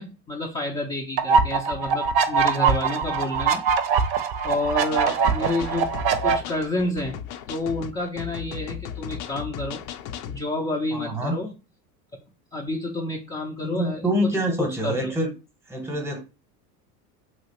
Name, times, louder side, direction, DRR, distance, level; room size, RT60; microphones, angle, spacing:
voice 1, 0.0-3.6 4.4-6.0 6.2-7.2 7.5-9.8 10.3-11.5 12.5-14.3 14.6-15.1, left 2 dB, 10° left, 0.3 m, -29 dB
sound 1, 1.2-6.4, right 5 dB, 50° right, 0.6 m, -22 dB
sound 2, 4.9-10.4, left 9 dB, 65° left, 0.5 m, -36 dB
voice 2, 10.9-11.4 13.6-15.3 15.7-16.2, equal, 5° right, 0.8 m, -26 dB
3.0 x 2.4 x 2.9 m
hypercardioid pair, 85°, 47 cm